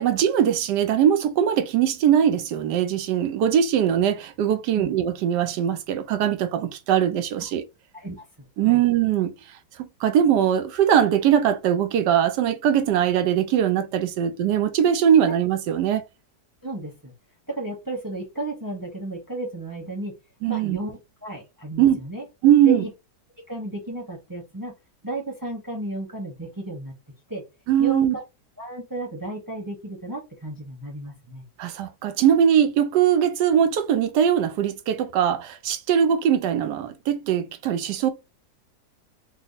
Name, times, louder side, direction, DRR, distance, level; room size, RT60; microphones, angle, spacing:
voice 1, 0.0-7.6 8.6-9.3 9.8-16.0 20.4-20.8 21.8-22.0 22.4-22.9 27.7-28.1 31.6-38.1, right 9 dB, 80° right, 1.2 m, -21 dB
voice 2, 16.6-17.1 17.5-20.1 20.5-22.2 22.6-22.9 23.5-24.7 25.0-26.9 27.3-27.4 27.8-28.2 28.6-31.4, right 2 dB, 15° right, 0.9 m, -33 dB
3.4 x 2.0 x 4.0 m
omnidirectional pair, 1.8 m